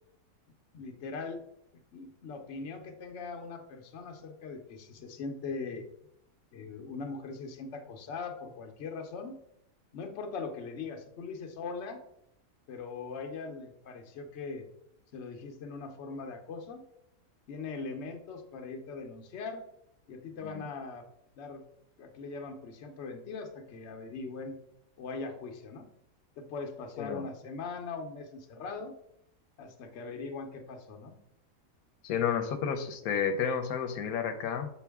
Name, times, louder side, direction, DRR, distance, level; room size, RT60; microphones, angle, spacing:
voice 1, 0.7-1.4 1.9-5.8 6.5-9.4 9.9-12.0 12.7-14.6 15.1-16.8 17.5-19.6 20.1-21.0 21.4-21.6 22.0-24.6 25.0-25.9 26.4-28.9 29.6-31.2, left 4 dB, 55° left, 5 dB, 1.0 m, -40 dB
voice 2, 32.0-34.7, left 7 dB, 85° left, 7 dB, 1.1 m, -31 dB
7.1 x 4.5 x 3.5 m, 0.76 s
omnidirectional pair, 1.5 m